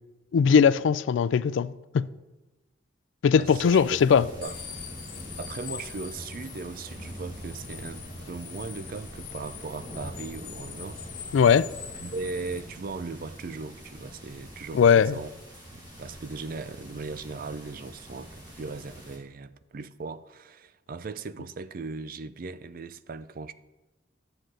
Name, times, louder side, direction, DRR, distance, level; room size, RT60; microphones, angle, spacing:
voice 1, 0.3-2.1 3.2-4.3 11.3-11.7 14.7-15.1, left 6 dB, 80° left, 0.3 m, -20 dB
voice 2, 3.3-4.6 5.4-11.0 12.0-15.3 15.7-23.5, right 4 dB, 50° right, 0.4 m, -38 dB
sound 1, 3.4-19.2, equal, 20° right, 2.2 m, -44 dB
sound 2, 4.4-12.6, left 8 dB, 55° left, 1.1 m, -43 dB
11.0 x 7.9 x 3.8 m
head